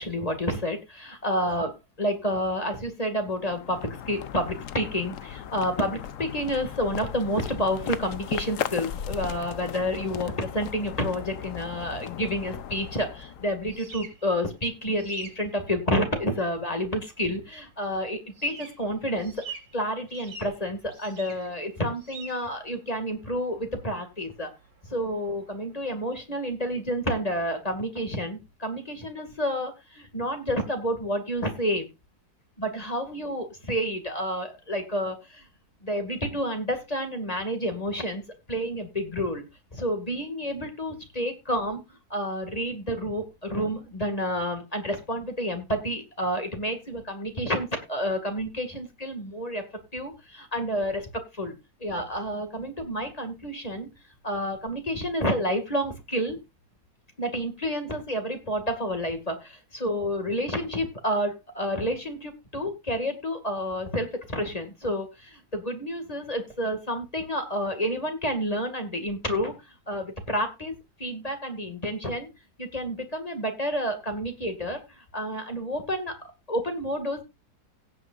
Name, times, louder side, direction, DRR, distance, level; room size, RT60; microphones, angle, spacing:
voice 1, 0.0-19.3 19.7-24.5 24.9-31.9 32.6-35.5 35.8-38.2 38.5-39.4 39.7-41.8 42.1-49.7 49.9-51.5 51.8-53.9 54.2-56.4 57.2-72.3 72.6-76.2 76.5-77.2, equal, 20° left, 6 dB, 2.1 m, -29 dB
sound 1, 3.2-13.9, left 9 dB, 65° left, 0.8 m, -37 dB
sound 2, 13.1-26.2, right 4 dB, 85° right, 4.2 m, -48 dB
17.0 x 8.6 x 2.5 m, 0.24 s
omnidirectional pair, 2.1 m